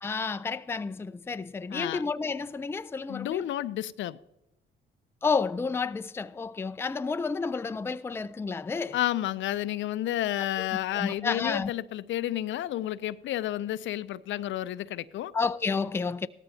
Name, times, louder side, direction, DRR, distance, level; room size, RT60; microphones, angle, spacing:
voice 1, 0.0-3.5 5.2-9.0 10.6-10.7 10.9-11.7 15.3-16.3, left 4 dB, 10° left, 0.4 m, -30 dB
voice 2, 1.7-2.0 3.1-4.2 8.9-15.3, left 13 dB, 70° left, 0.5 m, -31 dB
17.0 x 13.5 x 2.8 m
cardioid pair, 90°, 20 cm